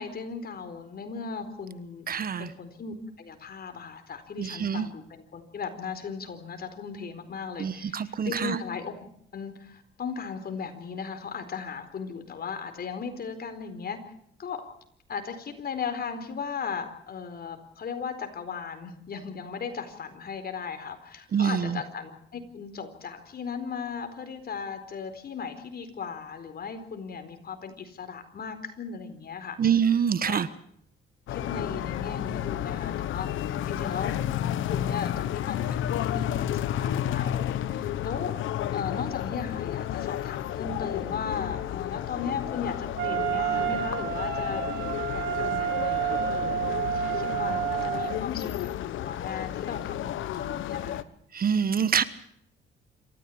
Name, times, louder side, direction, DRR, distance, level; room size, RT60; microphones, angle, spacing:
voice 1, 0.0-2.1 2.4-8.9 9.3-14.0 14.4-14.7 15.1-29.6 30.3-30.4 31.3-33.3 33.7-34.1 34.7-38.3 38.7-48.7 49.0-51.0, left 6 dB, 50° left, 8 dB, 4.3 m, -37 dB
voice 2, 2.1-2.5 4.4-4.9 7.6-8.6 21.3-21.8 29.6-30.5 51.3-52.0, right 7 dB, 45° right, 15 dB, 1.3 m, -25 dB
sound 1, 31.3-51.0, left 11 dB, 80° left, 1.1 m, -32 dB
Wind instrument woodwind instrument, 43.0-48.2, right 11 dB, 65° right, 3.4 m, -29 dB
27.0 x 14.5 x 8.7 m, 0.69 s
cardioid pair, 90°, 20 cm